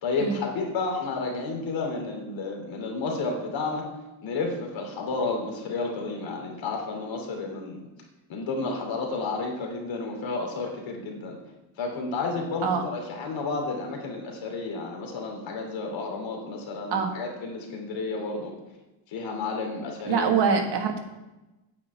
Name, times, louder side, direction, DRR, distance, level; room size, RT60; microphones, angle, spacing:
voice 1, 0.0-3.9 4.2-7.8 8.3-11.4 11.8-18.5 19.1-20.3, left 3 dB, 75° left, 2 dB, 2.9 m, -31 dB
voice 2, 20.1-21.0, right 6 dB, 60° right, 5 dB, 1.6 m, -24 dB
8.9 x 6.0 x 8.3 m, 1.0 s
cardioid pair, 180°, 46 cm